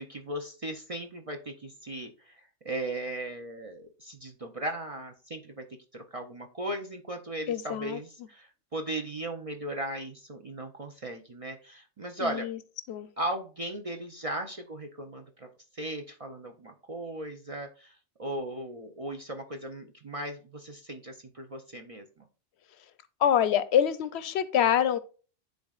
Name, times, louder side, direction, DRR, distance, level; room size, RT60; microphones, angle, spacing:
voice 1, 0.0-5.6 5.9-12.5 13.2-15.5 15.7-22.3, right 1 dB, 40° right, 4 dB, 0.5 m, -37 dB
voice 2, 7.5-8.0 12.2-12.6 12.9-13.1 23.2-25.0, left 9 dB, 70° left, 14 dB, 0.8 m, -25 dB
10.5 x 3.8 x 2.4 m, 0.37 s
omnidirectional pair, 1.2 m